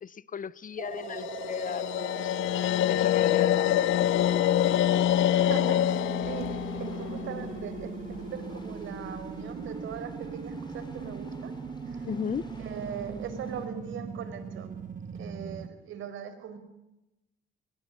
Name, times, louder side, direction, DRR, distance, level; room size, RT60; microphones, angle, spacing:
voice 1, 0.0-2.3 2.9-3.9 12.0-12.5, left 7 dB, 45° left, 0.8 m, -35 dB
sound 1, 0.8-15.7, right 6 dB, 40° right, 1.5 m, -39 dB
sound 2, 1.0-8.2, left 12 dB, 80° left, 0.8 m, -26 dB
voice 2, 5.3-6.5 6.8-11.5 11.9-12.1 12.6-14.7 15.1-16.6, right 7 dB, 75° right, 5.0 m, -40 dB
sound 3, 6.2-13.7, left 2 dB, 20° left, 6.6 m, -50 dB
23.0 x 21.0 x 8.6 m
cardioid pair, 90°, 20 cm